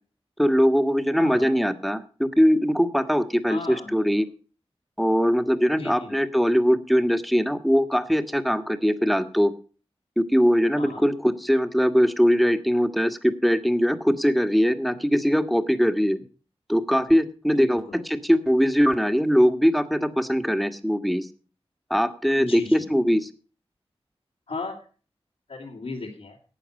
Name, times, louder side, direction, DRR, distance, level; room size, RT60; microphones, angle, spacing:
voice 1, 0.4-4.3 5.0-9.5 10.2-16.2 16.7-21.3 21.9-23.3, equal, ahead, 9 dB, 1.5 m, -21 dB
voice 2, 1.2-1.6 3.5-4.2 5.7-6.2 10.8-11.1 17.5-18.0 22.4-23.0 24.5-24.8 25.5-26.4, left 3 dB, 85° left, -4 dB, 3.0 m, -37 dB
12.5 x 8.4 x 6.4 m, 0.39 s
cardioid pair, 50°, 11 cm